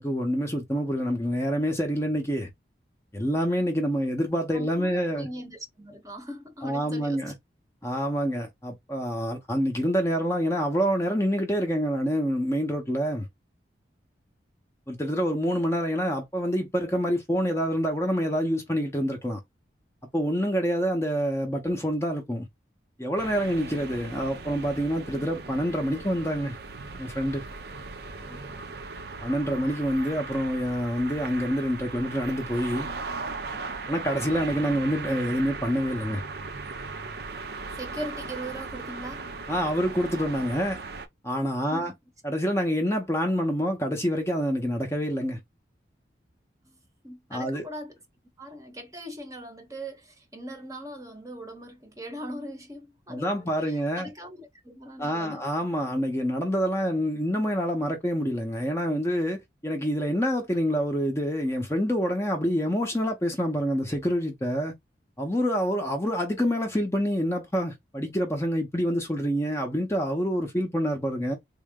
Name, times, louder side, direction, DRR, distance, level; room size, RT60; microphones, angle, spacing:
voice 1, 0.0-2.5 3.1-5.3 6.6-7.3 7.8-13.3 14.9-19.4 20.1-22.5 23.0-26.6 27.0-27.4 29.2-32.9 33.9-36.2 39.5-40.8 41.2-41.9 42.2-45.4 47.3-47.7 53.1-54.1 55.0-64.7 65.2-71.4, equal, 15° left, 0.6 m, -27 dB
voice 2, 4.5-7.3 28.2-28.7 37.8-39.3 41.6-41.9 46.6-46.8 47.0-47.9 48.4-55.5, right 1 dB, 20° right, 0.8 m, -40 dB
sound 1, 23.2-41.1, right 4 dB, 55° right, 0.6 m, -38 dB
3.7 x 2.1 x 3.6 m
head